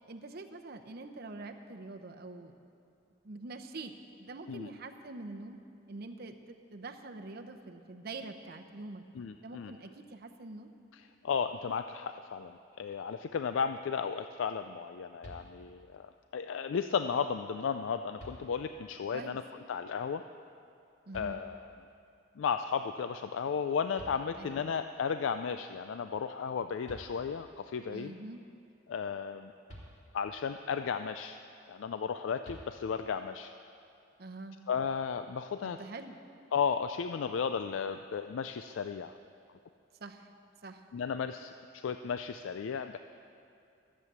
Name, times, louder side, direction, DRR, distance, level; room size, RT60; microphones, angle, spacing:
voice 1, 0.0-2.5 3.2-3.9 4.2-5.6 5.9-9.0 9.4-10.7 19.1-19.4 21.1-21.4 24.4-24.6 27.9-28.4 34.2-34.6 35.6-36.2 40.0-40.3 40.6-40.8, right 3 dB, 50° right, 5 dB, 0.8 m, -45 dB
voice 2, 9.2-9.7 10.9-19.4 19.7-20.2 21.1-21.9 22.4-28.1 28.9-29.5 30.1-31.4 31.7-33.5 34.7-35.8 36.5-39.1 40.9-43.0, left 6 dB, 80° left, 9 dB, 0.4 m, -34 dB
sound 1, 15.2-16.0 17.5-17.6 18.2-18.9 21.1-21.9 23.6-23.7 24.0-24.8 26.5-26.6 26.8-27.6 29.7-30.5 32.4-33.2, equal, 35° left, 2.8 m, -52 dB
13.5 x 7.6 x 8.2 m, 2.6 s
head